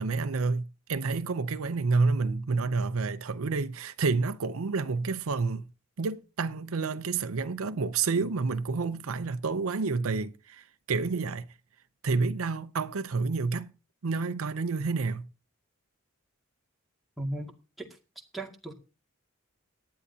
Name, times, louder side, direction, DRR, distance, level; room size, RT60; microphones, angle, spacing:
voice 1, 0.0-5.7 6.0-11.5 12.0-13.7 14.0-15.3, right 4 dB, 90° right, 0.6 m, -29 dB
voice 2, 17.2-17.9 18.3-18.7, right 1 dB, ahead, 2.1 m, -36 dB
18.0 x 11.5 x 2.8 m
head